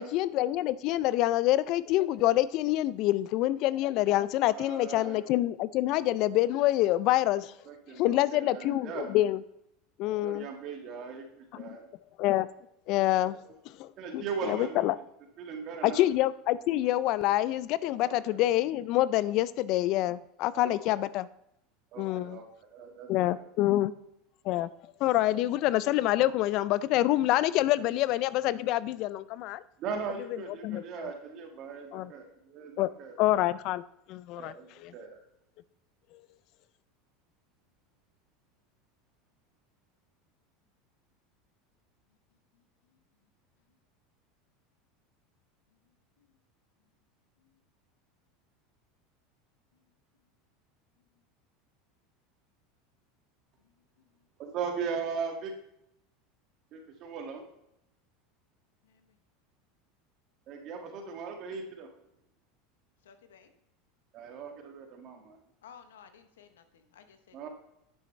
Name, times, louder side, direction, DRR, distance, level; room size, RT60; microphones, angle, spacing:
voice 1, 0.0-7.5 8.0-9.4 10.0-10.5 11.6-11.7 12.2-12.5 12.9-13.4 13.8-13.9 14.1-15.0 15.8-21.3 22.0-22.4 23.1-23.9 24.5-24.7 25.0-29.6 30.6-31.1 31.9-32.1 32.8-32.9 33.2-33.8 34.1-34.5 34.8-34.9, left 15 dB, 55° left, 17 dB, 0.3 m, -26 dB
voice 2, 4.5-5.2 7.6-9.1 10.2-11.9 13.3-13.4 14.0-15.0 15.4-16.1 18.0-18.4 20.5-21.1 21.9-23.3 27.7-28.0 29.8-33.1 34.4-35.2 54.4-55.5 56.7-57.5 60.5-61.9 64.1-65.4 67.3-67.5, right 5 dB, 50° right, 3 dB, 1.8 m, -39 dB
voice 3, 63.0-63.5 65.6-67.5, left 7 dB, 85° left, 9 dB, 0.8 m, -55 dB
9.0 x 6.9 x 3.1 m, 0.80 s
hypercardioid pair, 100°, 0 cm